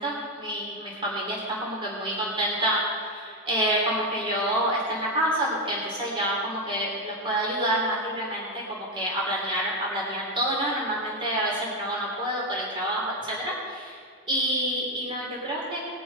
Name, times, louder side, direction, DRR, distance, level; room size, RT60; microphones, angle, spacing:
voice 1, 0.0-14.0 14.3-15.8, right 1 dB, 25° right, -5 dB, 3.1 m, -28 dB
20.5 x 6.9 x 5.4 m, 2.2 s
head